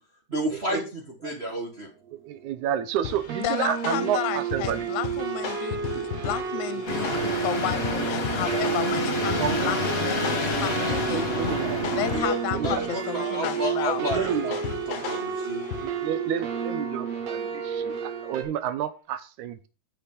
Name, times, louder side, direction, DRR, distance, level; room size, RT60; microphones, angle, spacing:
voice 1, 0.3-1.9 12.1-12.4 12.6-15.6, equal, 40° right, 0.9 m, -31 dB
sound 1, 2.1-2.2 2.4-2.8 3.3-18.4, right 7 dB, 65° right, 2.2 m, -31 dB
voice 2, 2.1-4.9 5.9-6.3 9.4-9.7 10.2-10.4 10.8-12.0 12.5-12.8 14.0-14.5 15.8-19.7, right 9 dB, 80° right, 2.2 m, -31 dB
sound 2, 3.0-16.2, left 8 dB, 60° left, 1.5 m, -37 dB
voice 3, 3.4-14.1, left 13 dB, 80° left, 2.0 m, -33 dB
sound 3, 6.9-12.2, left 2 dB, 30° left, 2.1 m, -28 dB
8.0 x 6.5 x 5.3 m
omnidirectional pair, 3.5 m